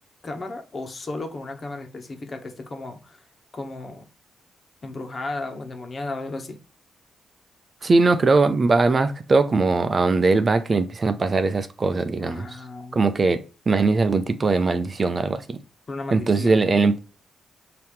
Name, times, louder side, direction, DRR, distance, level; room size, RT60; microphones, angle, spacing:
voice 1, 0.2-3.2 3.5-4.1 4.8-6.6 12.2-13.0 15.9-16.6, left 2 dB, 45° left, 1.3 m, -34 dB
voice 2, 7.8-12.5 12.9-15.6 16.1-17.0, right 3 dB, 40° right, 0.6 m, -20 dB
5.4 x 2.9 x 3.2 m
supercardioid pair, 60°, 0 cm